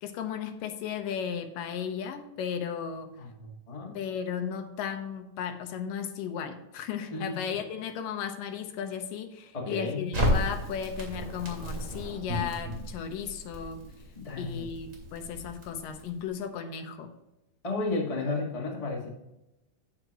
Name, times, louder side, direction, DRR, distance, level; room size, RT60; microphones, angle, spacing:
voice 1, 0.0-3.2 3.9-13.8 14.4-17.1, left 7 dB, 80° left, 6 dB, 2.5 m, -35 dB
voice 2, 3.2-4.0 7.1-7.4 9.5-10.1 14.1-14.7 17.6-19.1, left 3 dB, 60° left, -1 dB, 0.3 m, -33 dB
Crackle, 10.1-16.3, equal, 25° right, 2.6 m, -33 dB
9.4 x 9.1 x 2.9 m, 0.93 s
omnidirectional pair, 3.9 m